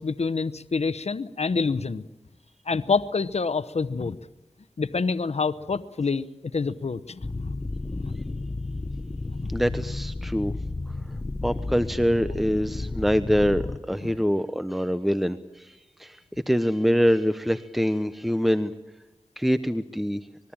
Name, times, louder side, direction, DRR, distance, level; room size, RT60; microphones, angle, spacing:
voice 1, 0.0-2.1 2.7-4.2 4.8-6.3 6.5-7.5 7.9-8.0 9.3-9.5, left 4 dB, 75° left, 14 dB, 0.9 m, -27 dB
sound 1, 7.2-13.8, left 2 dB, 35° left, 1.0 m, -32 dB
voice 2, 9.5-10.5 11.4-16.2 16.5-18.7 19.4-20.2, equal, ahead, 11 dB, 1.0 m, -24 dB
25.5 x 21.5 x 8.8 m, 1.0 s
wide cardioid pair, 55°, 11 cm